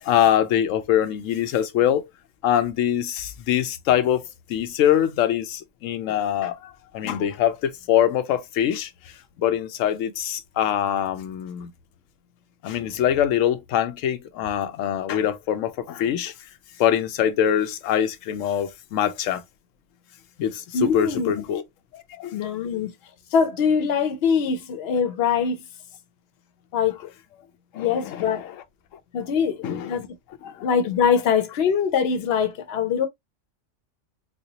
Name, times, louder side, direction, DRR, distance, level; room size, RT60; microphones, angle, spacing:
voice 1, 0.0-2.0 2.4-4.2 4.5-11.7 12.6-16.3 16.8-19.4 20.4-21.6 21.9-22.3 27.7-28.5 29.6-30.0 30.4-30.6, left 10 dB, 90° left, 1.0 m, -24 dB
voice 2, 20.7-21.4 22.3-22.9 23.3-25.6 26.7-27.1 27.7-28.5 29.1-30.1 30.6-33.1, left 6 dB, 60° left, 0.9 m, -23 dB
4.2 x 2.3 x 2.7 m
omnidirectional pair, 1.3 m